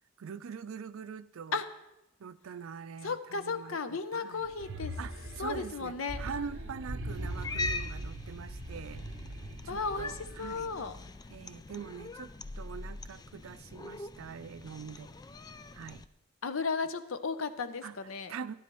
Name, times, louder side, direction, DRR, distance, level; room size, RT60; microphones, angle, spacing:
voice 1, 0.2-1.6 2.2-4.5 5.0-9.0 9.6-10.7 11.3-15.1 15.7-16.1 17.8-17.9 18.3-18.5, right 6 dB, 85° right, 15 dB, 0.4 m, -43 dB
voice 2, 3.0-4.9 5.4-6.2 9.7-11.0 16.4-18.3, left 4 dB, 85° left, 10 dB, 0.7 m, -35 dB
sound 1, 4.4-10.8, right 1 dB, 70° right, 1.0 m, -41 dB
Cat, 7.1-16.1, left 3 dB, 20° left, 0.3 m, -42 dB
15.0 x 10.0 x 3.1 m, 0.93 s
head